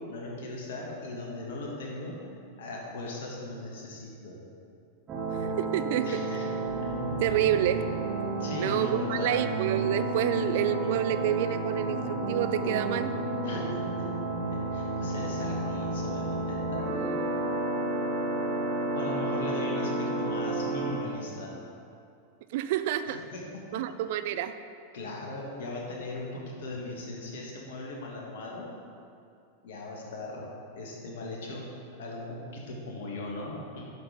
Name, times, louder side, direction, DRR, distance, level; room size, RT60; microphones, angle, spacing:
voice 1, 0.1-2.2 2.6-4.4 6.0-6.5 8.4-9.4 13.4-14.1 14.7-17.1 18.9-21.5 23.1-23.6 24.9-28.7 29.6-30.5 30.7-31.7 32.0-33.8, left 2 dB, 55° left, -2 dB, 1.7 m, -39 dB
sound 1, 5.1-20.9, right 2 dB, 25° right, 1.9 m, -31 dB
voice 2, 5.4-6.2 7.2-7.8 8.6-13.1 22.5-23.2 23.7-24.5, right 12 dB, 50° right, 11 dB, 0.3 m, -28 dB
7.9 x 5.9 x 5.1 m, 2.5 s
figure-of-eight pair, 90°, 0 cm